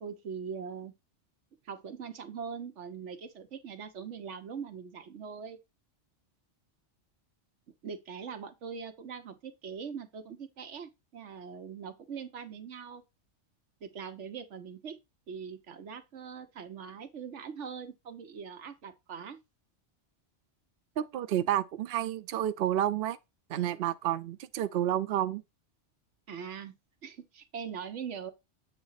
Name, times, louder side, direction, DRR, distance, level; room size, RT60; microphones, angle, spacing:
voice 1, 0.0-0.9 1.6-5.6 7.8-13.0 13.8-15.0 15.3-19.4 26.3-26.7 27.0-28.3, right 6 dB, 80° right, 1.3 m, -42 dB
voice 2, 21.0-23.2 23.5-25.4, right 11 dB, 60° right, 0.7 m, -30 dB
8.0 x 2.9 x 5.6 m
omnidirectional pair, 1.2 m